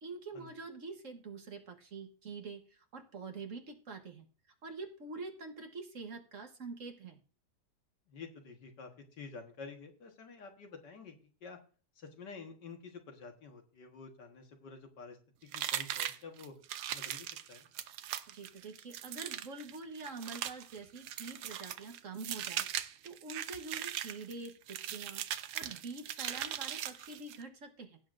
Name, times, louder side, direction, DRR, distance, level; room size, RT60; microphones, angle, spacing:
voice 1, 0.0-4.3 4.6-7.2 18.3-25.2 25.5-28.0, right 4 dB, 50° right, 5 dB, 1.5 m, -46 dB
voice 2, 8.1-8.9 9.2-11.2 11.4-11.6 12.0-15.2 15.4-16.6 16.9-17.7, left 4 dB, 90° left, 3 dB, 2.2 m, -49 dB
sound 1, 15.5-27.4, right 11 dB, 75° right, 1.2 m, -40 dB
16.5 x 8.0 x 2.6 m, 0.39 s
omnidirectional pair, 1.8 m